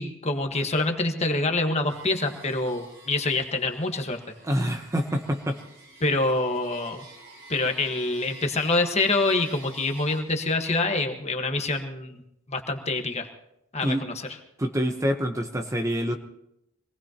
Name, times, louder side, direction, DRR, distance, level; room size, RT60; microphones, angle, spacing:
voice 1, 0.0-4.2 6.0-7.0 7.5-12.2 12.5-13.3 13.7-14.3, left 2 dB, 35° left, 5 dB, 1.4 m, -26 dB
sound 1, 1.9-10.2, right 2 dB, 70° right, 6.7 m, -49 dB
voice 2, 4.4-5.6 13.8-14.0 14.6-16.1, equal, 15° right, 5 dB, 0.8 m, -26 dB
25.0 x 19.0 x 2.9 m, 0.81 s
head